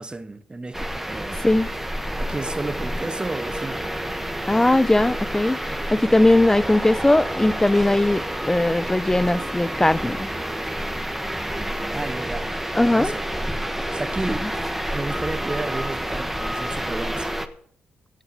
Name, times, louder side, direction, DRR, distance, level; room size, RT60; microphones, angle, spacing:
voice 1, 0.0-1.4 2.2-4.0 11.9-13.3 13.9-14.5 14.9-17.3, right 2 dB, 20° right, 1.2 m, -32 dB
sound 1, 0.7-17.5, right 1 dB, 5° right, 1.4 m, -29 dB
voice 2, 4.5-10.3 12.8-13.1, left 1 dB, 15° left, 0.6 m, -19 dB
16.0 x 8.9 x 6.4 m
supercardioid pair, 55°, 4 cm